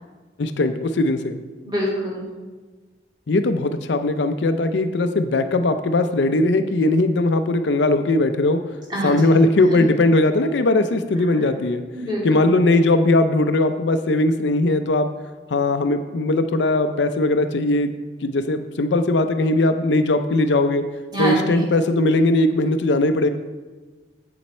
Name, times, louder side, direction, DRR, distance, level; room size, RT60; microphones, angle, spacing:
voice 1, 0.4-1.4 3.3-8.6 9.0-11.8 12.2-15.1 15.5-17.9 18.2-20.8 21.2-23.3, left 2 dB, 70° left, 9 dB, 0.5 m, -19 dB
voice 2, 1.6-2.2 8.9-9.2 11.9-12.2 21.1-21.6, equal, 25° right, -6 dB, 2.6 m, -24 dB
7.8 x 7.3 x 4.3 m, 1.3 s
head